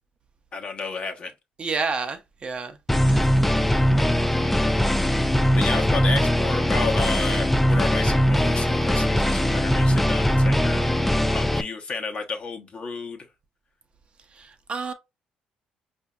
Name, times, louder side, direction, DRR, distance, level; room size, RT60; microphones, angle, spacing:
voice 1, 0.5-1.3 5.5-13.3, left 4 dB, 45° left, 0.9 m, -32 dB
voice 2, 1.6-2.7 3.1-3.6 14.7-14.9, right 4 dB, 40° right, 0.6 m, -29 dB
sound 1, 2.9-11.6, equal, 5° left, 0.3 m, -21 dB
4.8 x 2.6 x 2.3 m
cardioid pair, 80°, 3 cm